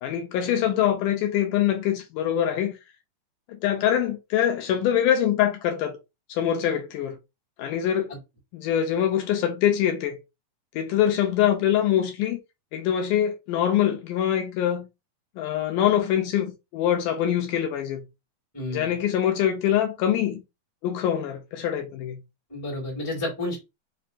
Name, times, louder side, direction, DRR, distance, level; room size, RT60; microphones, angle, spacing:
voice 1, 0.0-2.7 3.5-6.0 6.3-7.2 7.6-8.1 8.5-10.2 10.8-12.4 12.7-14.9 15.4-18.0 18.7-20.4 20.8-22.2, left 10 dB, 80° left, 2.1 m, -24 dB
voice 2, 18.5-19.0 22.5-23.6, left 2 dB, 15° left, 0.6 m, -31 dB
5.5 x 2.2 x 2.5 m
omnidirectional pair, 3.9 m